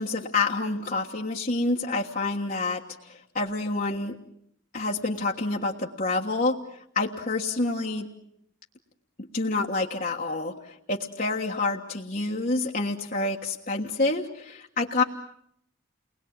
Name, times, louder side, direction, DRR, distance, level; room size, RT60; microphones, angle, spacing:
voice 1, 0.0-4.2 4.7-8.1 9.2-15.0, left 3 dB, 45° left, -1 dB, 1.5 m, -28 dB
30.0 x 21.0 x 8.8 m, 0.72 s
head